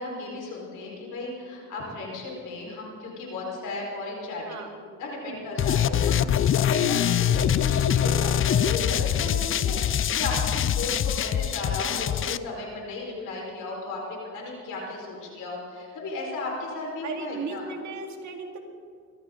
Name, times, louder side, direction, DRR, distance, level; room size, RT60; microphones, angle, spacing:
voice 1, 0.0-4.4 5.0-17.6, left 2 dB, 80° left, -2 dB, 5.0 m, -35 dB
voice 2, 5.3-5.6 6.1-6.4 17.0-18.6, right 4 dB, 70° right, 3 dB, 2.3 m, -36 dB
sound 1, 5.6-12.4, left 9 dB, 45° left, 0.5 m, -24 dB
22.5 x 14.5 x 3.9 m, 2.1 s
cardioid pair, 90°, 30 cm